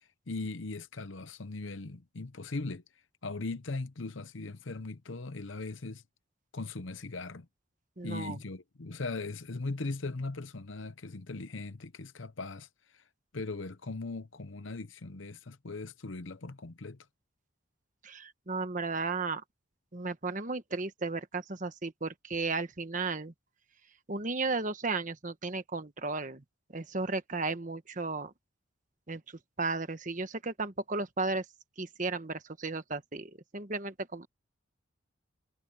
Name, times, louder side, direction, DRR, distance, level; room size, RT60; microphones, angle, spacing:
voice 1, 0.3-2.8 3.2-6.0 6.5-7.5 8.0-12.7 13.3-17.0, left 3 dB, 70° left, 0.9 m, -39 dB
voice 2, 8.0-8.4 18.0-19.4 19.9-23.3 24.1-26.4 26.7-28.3 29.1-29.2 29.6-31.4 31.8-34.3, right 3 dB, 40° right, 1.3 m, -34 dB
head